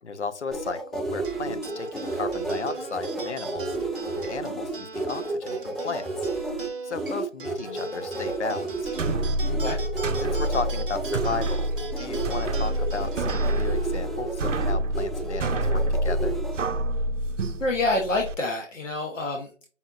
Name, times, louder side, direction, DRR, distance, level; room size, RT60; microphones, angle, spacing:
voice 1, 0.0-3.8 4.2-6.3 6.8-8.9 10.2-11.7 12.0-16.4, left 4 dB, 65° left, 11 dB, 0.6 m, -34 dB
sound 1, 0.5-16.6, right 2 dB, ahead, 0.3 m, -32 dB
sound 2, 1.2-16.0, right 4 dB, 45° right, 0.7 m, -40 dB
sound 3, 8.8-18.3, right 1 dB, 80° right, 0.6 m, -27 dB
voice 2, 9.5-9.8 17.6-19.7, left 2 dB, 85° left, 1 dB, 1.0 m, -27 dB
5.3 x 2.4 x 2.7 m, 0.37 s
figure-of-eight pair, 165°, 37 cm